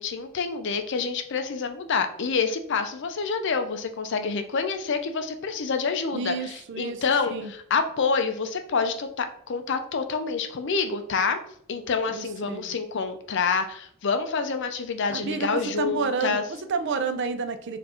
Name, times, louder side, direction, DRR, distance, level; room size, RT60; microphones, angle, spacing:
voice 1, 0.0-6.3 6.8-7.3 7.7-11.4 11.7-16.4, left 5 dB, 55° left, 8 dB, 0.5 m, -27 dB
voice 2, 6.1-7.0 7.3-7.5 12.1-12.8 15.1-17.8, right 5 dB, 55° right, 10 dB, 0.4 m, -30 dB
4.4 x 2.5 x 4.2 m, 0.66 s
head